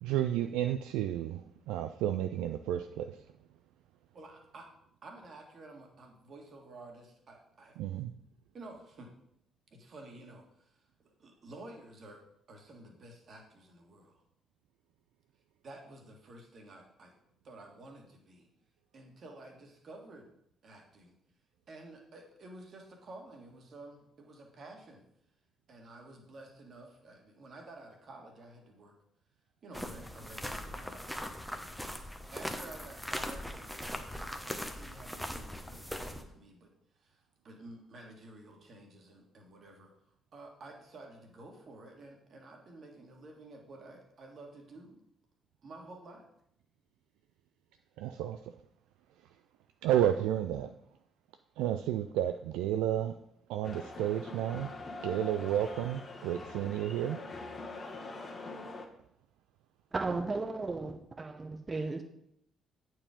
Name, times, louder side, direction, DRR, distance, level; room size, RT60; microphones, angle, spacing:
voice 1, 0.0-3.2 7.8-8.1 48.0-48.4 49.8-50.7 51.6-53.1 53.5-54.7 55.0-57.2, right 11 dB, 70° right, 0.3 m, -31 dB
voice 2, 4.1-4.7 5.0-7.8 8.5-9.1 9.7-12.2 12.5-14.2 15.6-17.1 17.4-18.5 18.9-20.3 20.6-21.1 21.7-25.0 25.7-28.9 29.6-31.8 32.3-36.7 37.0-39.9 40.3-45.0 45.6-46.3, right 2 dB, 50° right, 1.8 m, -51 dB
sound 1, 29.7-36.2, equal, ahead, 1.0 m, -40 dB
sound 2, 53.6-58.9, left 3 dB, 40° left, 1.4 m, -44 dB
voice 3, 59.9-62.0, right 3 dB, 30° right, 0.9 m, -35 dB
8.7 x 4.7 x 5.1 m
figure-of-eight pair, 45°, 0 cm